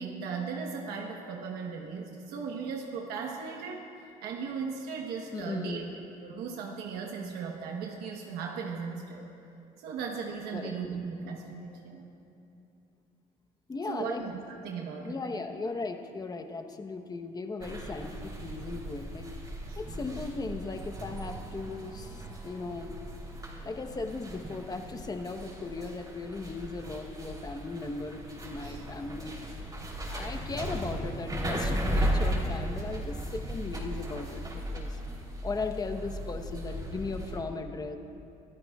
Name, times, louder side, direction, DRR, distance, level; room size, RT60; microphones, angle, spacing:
voice 1, 0.0-3.9 4.2-5.8 6.2-9.3 9.8-12.0 13.9-15.2 19.7-19.8 28.6-28.8, right 5 dB, 90° right, 1 dB, 1.1 m, -37 dB
voice 2, 5.3-5.9 10.5-10.8 13.7-14.2 15.0-19.3 19.8-23.0 23.6-29.4 30.1-35.0 35.4-38.0, left 3 dB, 25° left, 6 dB, 1.0 m, -37 dB
sound 1, 17.6-37.4, equal, 25° right, 3.2 m, -36 dB
25.0 x 14.0 x 2.4 m, 2.8 s
cardioid pair, 100°, 16 cm